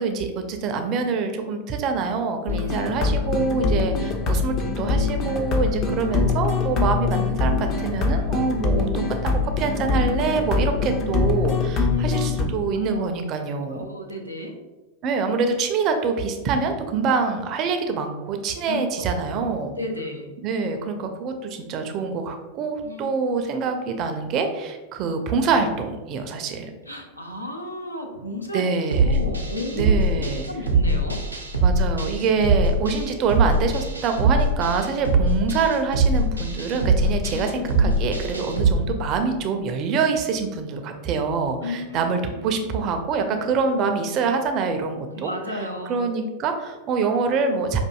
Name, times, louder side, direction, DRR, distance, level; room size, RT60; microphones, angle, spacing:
voice 1, 0.0-13.8 15.0-19.7 20.4-26.7 28.5-29.2 29.7-30.4 31.6-45.3 45.9-47.8, right 4 dB, 35° right, 6 dB, 0.4 m, -25 dB
sound 1, 2.5-12.5, left 4 dB, 30° left, 0.5 m, -23 dB
voice 2, 11.8-13.0 13.7-14.6 18.7-19.1 19.8-20.3 22.8-23.1 26.9-28.6 29.0-31.2 37.3-37.4 37.7-37.9 41.6-42.0 42.4-42.8 43.7-44.2 45.2-46.0, left 1 dB, 85° left, 2 dB, 0.5 m, -33 dB
sound 2, 28.9-38.8, right 2 dB, 80° right, 0.5 m, -22 dB
5.1 x 2.5 x 2.3 m, 1.2 s
figure-of-eight pair, 90°, 0 cm